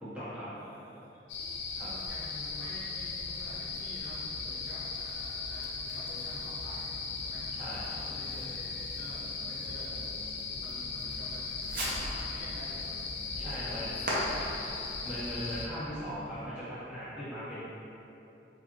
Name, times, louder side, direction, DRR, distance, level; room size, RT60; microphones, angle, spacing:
voice 1, 0.0-0.5 1.7-1.9 7.6-7.8 13.3-13.9 15.0-17.7, equal, 5° right, -14 dB, 1.2 m, -39 dB
voice 2, 0.5-1.0 1.8-6.9 7.2-13.0 13.2-14.5, equal, 70° left, -9 dB, 1.2 m, -49 dB
sound 1, 1.3-15.7, left 4 dB, 90° left, 0.4 m, -38 dB
Fireworks, 5.8-16.5, equal, 50° right, 0.7 m, -42 dB
4.8 x 2.5 x 3.0 m, 2.9 s
head